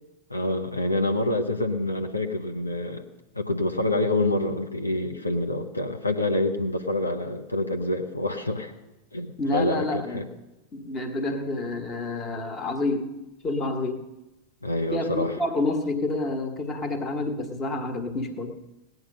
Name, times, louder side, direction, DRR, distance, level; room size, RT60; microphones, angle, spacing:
voice 1, 0.3-3.0 3.3-8.7 9.1-10.3 14.6-15.4, left 2 dB, 80° left, 4 dB, 1.0 m, -27 dB
voice 2, 9.4-10.3 10.7-13.1 13.4-14.1 14.9-18.5, left 2 dB, 25° left, 7 dB, 1.5 m, -28 dB
18.0 x 9.6 x 5.4 m, 1.0 s
figure-of-eight pair, 90°, 0 cm